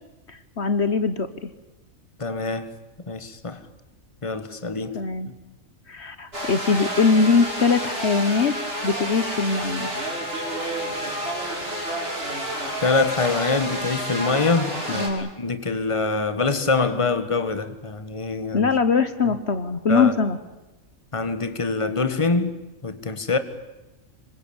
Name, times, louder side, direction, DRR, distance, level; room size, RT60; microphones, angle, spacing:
voice 1, 0.3-1.5 4.9-5.3 5.9-8.6 8.8-9.9 14.9-15.3 18.5-20.4, left 4 dB, 55° left, 1.5 m, -22 dB
voice 2, 2.2-2.7 3.1-3.6 4.2-5.0 12.8-18.7 19.2-19.3 19.9-20.1 21.1-23.4, left 3 dB, 25° left, 1.6 m, -25 dB
sound 1, 6.3-15.1, equal, 50° right, 6.4 m, -30 dB
26.5 x 24.5 x 8.9 m
omnidirectional pair, 1.3 m